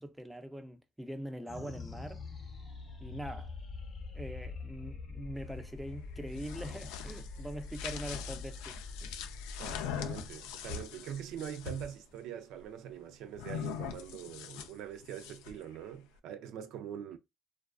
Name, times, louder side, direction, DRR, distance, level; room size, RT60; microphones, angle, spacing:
voice 1, 0.0-2.2 3.0-3.5 4.1-9.3, equal, 5° right, 0.4 m, -43 dB
sound 1, 1.4-12.1, left 3 dB, 35° left, 0.7 m, -45 dB
sound 2, 6.2-11.9 13.4-15.6, left 8 dB, 90° left, 0.3 m, -42 dB
voice 2, 9.6-17.2, right 9 dB, 75° right, 0.3 m, -43 dB
2.4 x 2.3 x 2.3 m
supercardioid pair, 95°, 0 cm